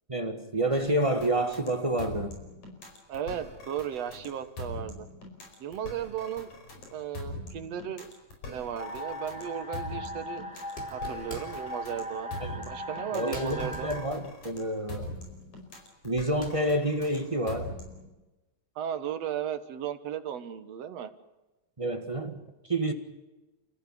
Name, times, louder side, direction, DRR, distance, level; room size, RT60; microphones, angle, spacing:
voice 1, 0.1-2.4 12.4-12.6 13.1-15.1 16.0-17.7 21.8-22.4 22.7-22.9, right 1 dB, 30° right, 6 dB, 0.5 m, -28 dB
sound 1, 0.7-18.1, left 2 dB, 65° left, 6.3 m, -42 dB
voice 2, 3.1-5.1 5.6-6.5 6.9-8.1 8.5-10.5 10.9-12.4 12.7-14.0 18.8-21.1, right 9 dB, 60° right, 10 dB, 2.3 m, -35 dB
sound 2, 8.8-14.0, equal, ahead, 3.5 m, -39 dB
sound 3, 9.6-9.8 10.5-11.7 12.3-12.5 12.9-13.0 13.3-15.8 16.1-17.4, equal, 15° left, 4.8 m, -45 dB
30.0 x 14.5 x 10.0 m, 1.1 s
omnidirectional pair, 3.6 m